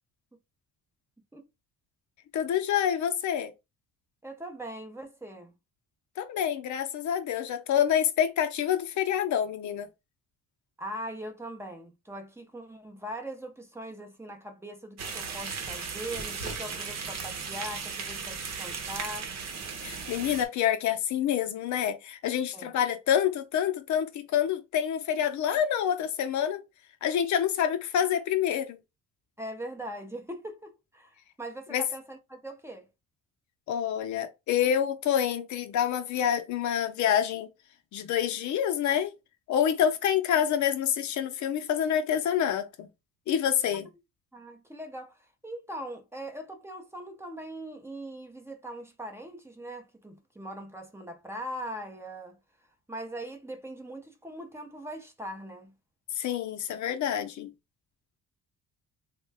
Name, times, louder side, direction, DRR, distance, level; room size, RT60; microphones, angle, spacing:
voice 1, 2.3-3.5 6.2-9.9 19.8-26.6 27.0-28.8 31.7-31.8 33.7-37.5 37.9-39.1 39.5-42.9 43.3-43.9 56.2-57.5, left 9 dB, 70° left, 0.6 m, -27 dB
voice 2, 4.2-5.5 10.8-19.3 22.5-22.7 29.4-32.9 44.3-52.4 52.9-55.7, right 1 dB, 10° right, 0.6 m, -41 dB
sound 1, 15.0-20.4, right 5 dB, 60° right, 0.9 m, -36 dB
3.6 x 2.2 x 3.3 m
cardioid pair, 135°, 30 cm